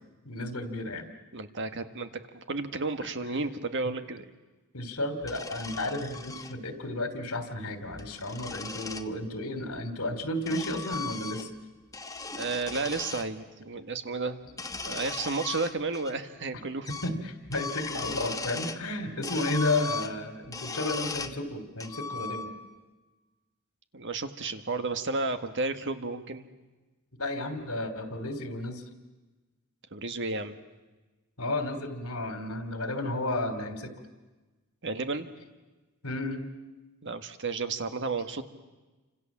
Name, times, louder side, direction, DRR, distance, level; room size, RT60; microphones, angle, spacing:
voice 1, 0.2-1.1 3.9-4.0 4.7-11.5 17.0-22.5 27.2-28.8 31.4-33.9 36.0-36.5, left 2 dB, 80° left, 8 dB, 3.1 m, -32 dB
voice 2, 1.3-4.2 12.3-14.4 14.8-16.9 23.9-26.5 29.9-30.6 34.8-35.3 37.0-38.4, right 3 dB, 55° right, 8 dB, 1.7 m, -32 dB
sound 1, 5.2-6.5 7.8-9.1 10.0-11.6 11.9-13.3 14.5-16.1 16.4-16.5 16.8-17.2 17.4-18.9 19.2-21.4 21.8-22.7, left 4 dB, 15° left, 1.2 m, -38 dB
29.5 x 26.0 x 7.4 m, 1.2 s
head